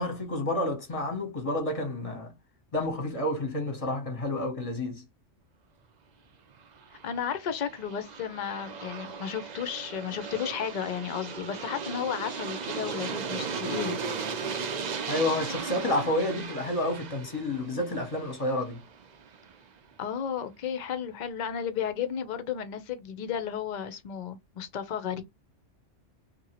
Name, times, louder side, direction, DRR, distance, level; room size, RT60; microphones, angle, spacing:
voice 1, 0.0-2.3 2.7-5.0 15.1-18.8, left 1 dB, 30° left, 0.8 m, -30 dB
Aircraft, 6.7-19.5, right 5 dB, 50° right, 0.5 m, -37 dB
voice 2, 7.0-14.0 20.0-25.2, left 8 dB, 55° left, 0.5 m, -33 dB
2.7 x 2.6 x 2.8 m
omnidirectional pair, 1.3 m